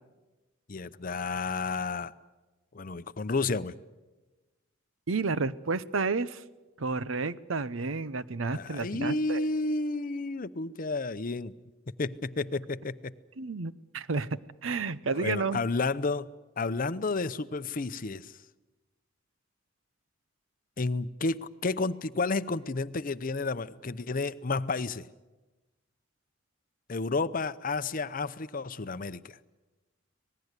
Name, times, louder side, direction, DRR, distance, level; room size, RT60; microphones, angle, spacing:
voice 1, 0.7-2.1 2.7-3.7 8.5-11.5 12.0-13.1 15.1-16.3 16.6-18.3 20.8-25.1 26.9-29.4, left 3 dB, 45° left, 14 dB, 0.7 m, -31 dB
voice 2, 5.1-6.4 6.8-9.4 13.4-14.3 14.6-15.6, right 4 dB, 80° right, 16 dB, 0.8 m, -31 dB
26.0 x 19.5 x 8.2 m, 1.2 s
head